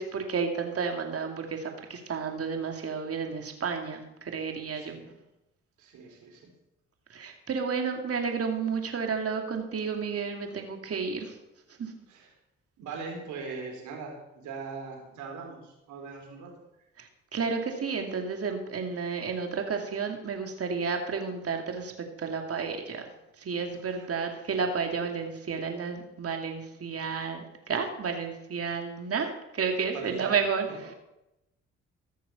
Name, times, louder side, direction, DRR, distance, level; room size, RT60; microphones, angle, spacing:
voice 1, 0.0-5.0 7.1-11.4 11.8-11.9 17.0-21.9 22.2-23.1 23.4-29.3 29.5-30.9, right 5 dB, 50° right, 4 dB, 2.6 m, -31 dB
voice 2, 4.7-5.1 5.8-6.5 12.1-12.3 12.8-16.6 23.7-24.1 29.9-30.4 30.7-30.9, right 4 dB, 80° right, 1 dB, 3.8 m, -41 dB
15.0 x 6.5 x 7.0 m, 0.90 s
supercardioid pair, 60°, 29 cm